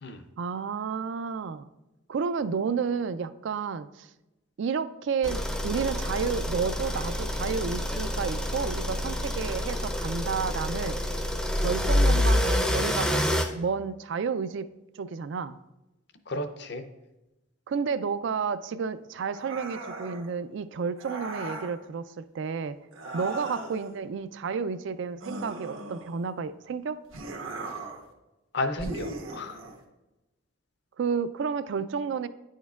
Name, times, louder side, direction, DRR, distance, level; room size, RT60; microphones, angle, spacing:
voice 1, 0.4-1.7 2.1-4.1 4.6-11.0 11.6-14.7 15.0-15.6 17.7-22.8 23.1-27.0 31.0-32.3, right 5 dB, 60° right, 13 dB, 0.3 m, -31 dB
sound 1, 5.2-13.4, left 1 dB, 5° left, 0.4 m, -27 dB
voice 2, 16.3-16.8 27.6-27.8 28.5-29.6, left 2 dB, 55° left, 8 dB, 0.5 m, -33 dB
sound 2, 19.3-20.3 21.0-21.8 22.9-23.9 25.2-26.3 27.1-28.1 28.8-29.8, right 2 dB, 75° right, 1.0 m, -38 dB
9.9 x 6.4 x 2.3 m, 0.98 s
head